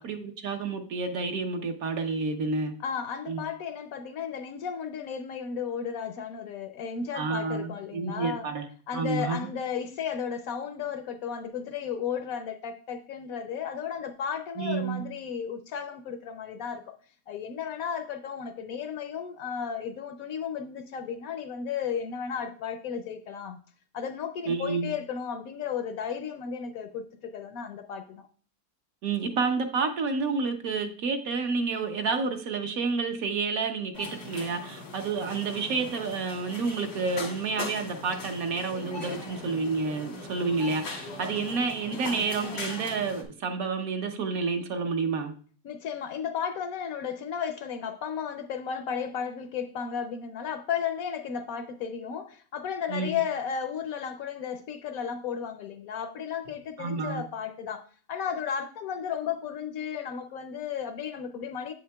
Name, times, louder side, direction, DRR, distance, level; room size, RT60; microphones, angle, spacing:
voice 1, 0.0-2.7 3.3-3.4 7.1-8.7 8.9-9.5 14.6-15.0 24.5-24.9 29.0-45.3 52.9-53.1 56.8-57.2, right 4 dB, 65° right, 1.1 m, -29 dB
voice 2, 2.8-8.5 8.9-16.9 17.3-23.6 23.9-28.3 45.6-61.7, left 7 dB, 70° left, 0.9 m, -34 dB
sound 1, 33.9-43.2, left 3 dB, 90° left, 1.9 m, -40 dB
7.9 x 6.4 x 2.2 m
omnidirectional pair, 1.7 m